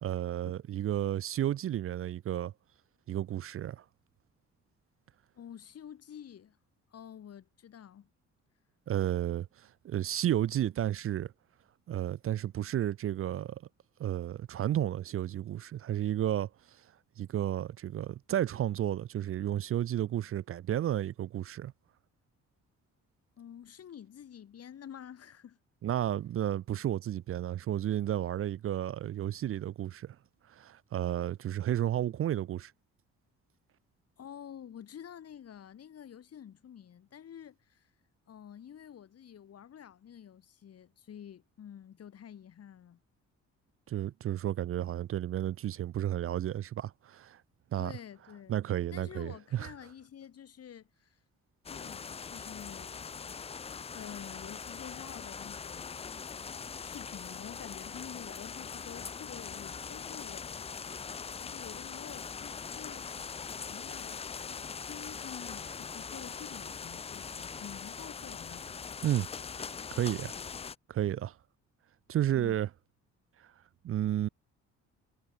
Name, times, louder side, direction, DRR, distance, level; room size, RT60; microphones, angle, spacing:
voice 1, 0.0-2.5 3.1-3.8 8.9-11.3 11.9-13.6 14.0-16.5 17.2-21.7 25.8-30.2 30.5-32.7 43.9-47.4 47.7-47.9 48.5-49.7 69.0-69.3 69.9-70.3 70.9-71.4 72.1-72.7 73.4-73.5 73.8-74.3, right 11 dB, 50° right, 0.5 m, -32 dB
voice 2, 5.4-6.6 6.9-8.1 23.4-25.6 34.2-37.9 38.3-43.0 47.8-48.6 48.9-51.2 51.7-53.0 53.9-55.9 56.8-60.5 61.4-63.1 63.6-68.7 72.3-72.6, left 9 dB, 55° left, 1.8 m, -49 dB
sound 1, 51.7-70.8, left 6 dB, 20° left, 0.4 m, -42 dB
cardioid pair, 90°, 30 cm